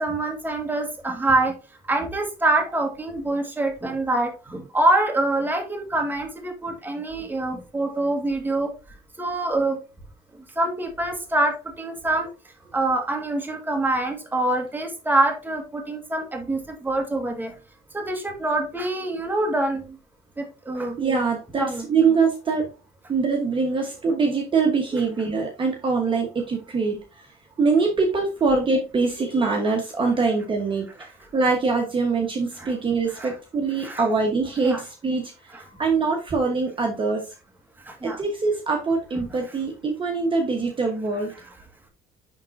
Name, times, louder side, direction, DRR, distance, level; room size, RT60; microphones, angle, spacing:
voice 1, 0.0-1.5 1.9-8.7 9.2-9.8 10.4-12.3 12.7-17.5 17.9-20.0 20.4-21.0 21.6-21.8 32.6-32.7 33.1-33.3 33.8-34.0 34.6-34.8 35.5-35.6 37.8-38.2, right 2 dB, 10° right, 4 dB, 1.6 m, -25 dB
voice 2, 21.0-22.7 23.1-27.3 27.6-37.3 38.2-41.3, right 4 dB, 30° right, 2 dB, 1.2 m, -23 dB
10.5 x 3.7 x 2.6 m, 0.30 s
cardioid pair, 110°, 17 cm